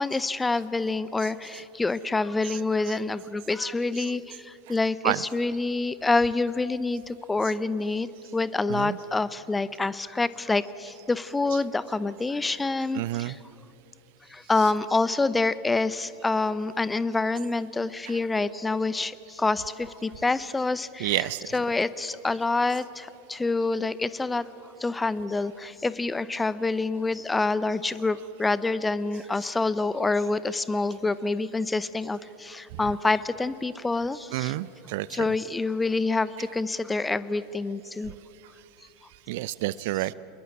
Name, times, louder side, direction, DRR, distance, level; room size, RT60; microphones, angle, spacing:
voice 1, 0.0-13.4 14.3-24.5 24.8-34.6 35.1-38.1, left 3 dB, 10° left, 17 dB, 0.8 m, -27 dB
voice 2, 12.9-13.4 14.5-14.7 21.0-21.4 34.3-35.3 39.3-40.1, right 18 dB, 55° right, 20 dB, 0.6 m, -29 dB
26.5 x 21.5 x 9.5 m, 2.8 s
figure-of-eight pair, 85°, 0 cm